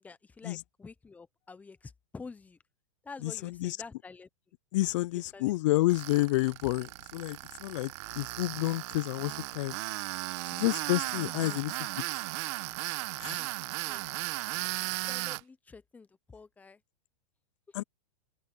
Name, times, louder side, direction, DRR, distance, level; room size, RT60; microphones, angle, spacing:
voice 1, 0.0-2.6 3.0-4.3 5.1-5.5 11.0-11.6 13.4-14.3 15.1-16.8, left 4 dB, 10° left, 0.8 m, -49 dB
voice 2, 3.2-3.8 4.7-9.7 10.5-12.0 13.2-13.5 17.7-17.8, left 18 dB, 55° left, 0.4 m, -30 dB
Tools, 5.9-15.4, right 22 dB, 45° right, 1.2 m, -36 dB
open air
supercardioid pair, 145°, 19 cm